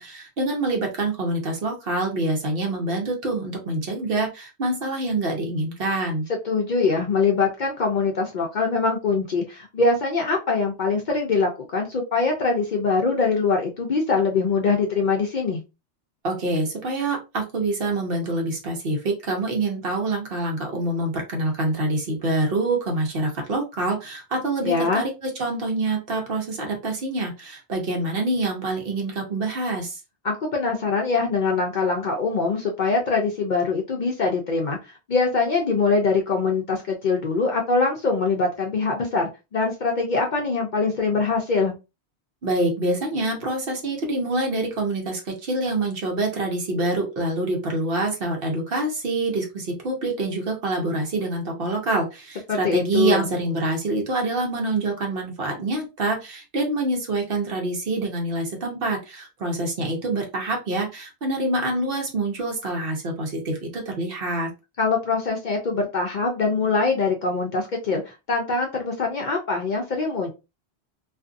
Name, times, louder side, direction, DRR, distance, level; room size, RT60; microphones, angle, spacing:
voice 1, 0.0-6.3 16.2-30.0 42.4-64.5, right 2 dB, 60° right, 1 dB, 1.0 m, -26 dB
voice 2, 6.4-15.6 24.6-25.0 30.2-41.7 52.5-53.3 64.8-70.3, left 4 dB, 55° left, 1 dB, 0.6 m, -23 dB
2.5 x 2.5 x 2.4 m, 0.27 s
omnidirectional pair, 1.2 m